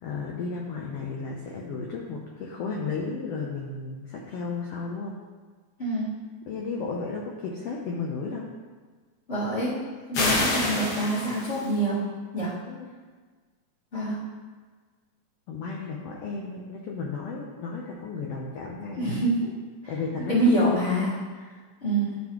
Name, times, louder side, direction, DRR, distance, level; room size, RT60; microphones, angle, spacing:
voice 1, 0.0-5.2 6.5-8.5 12.6-12.9 15.5-19.1 19.9-20.4, left 4 dB, 80° left, -1 dB, 1.4 m, -34 dB
voice 2, 9.3-12.1 12.3-12.5 13.9-14.2 19.0-19.5 19.8-19.9 20.3-21.4 21.8-22.2, right 1 dB, 25° left, -13 dB, 1.7 m, -26 dB
sound 1, 10.1-11.7, left 2 dB, 60° left, 1.9 m, -27 dB
11.0 x 4.2 x 3.0 m, 1.5 s
omnidirectional pair, 3.5 m